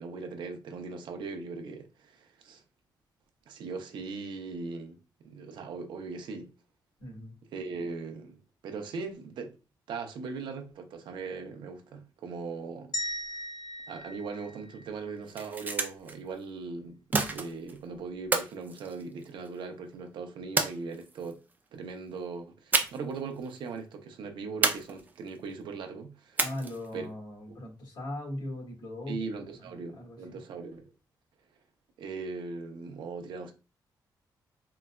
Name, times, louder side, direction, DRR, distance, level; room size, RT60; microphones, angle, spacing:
voice 1, 0.0-2.6 3.5-5.0 5.2-6.5 7.5-9.5 9.9-12.9 13.9-17.0 17.3-21.4 21.7-26.4 26.9-27.1 27.5-27.6 29.1-30.9 32.0-33.5, right 4 dB, 85° right, 0.5 m, -39 dB
voice 2, 7.0-7.3 26.4-30.4, left 1 dB, 70° left, 1.7 m, -40 dB
sound 1, 12.9-15.2, equal, 55° left, 0.4 m, -38 dB
sound 2, 15.2-16.1 17.1-17.8 18.3-19.6 20.6-21.3 22.7-23.2 23.4-23.6 24.6-25.4 26.4-26.9, right 3 dB, 20° right, 0.4 m, -30 dB
3.8 x 2.2 x 2.2 m
wide cardioid pair, 150°, 8 cm